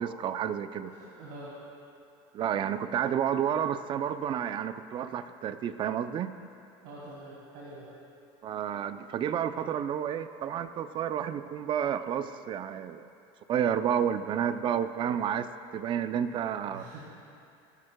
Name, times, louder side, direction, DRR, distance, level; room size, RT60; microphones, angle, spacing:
voice 1, 0.0-0.9 2.3-6.4 8.4-13.1 13.5-17.0, right 9 dB, 35° right, 11 dB, 0.5 m, -30 dB
voice 2, 0.9-1.6 6.8-7.9 16.7-17.0, right 1 dB, 70° right, -7 dB, 3.4 m, -45 dB
22.5 x 12.0 x 2.3 m, 2.7 s
supercardioid pair, 115°, 13 cm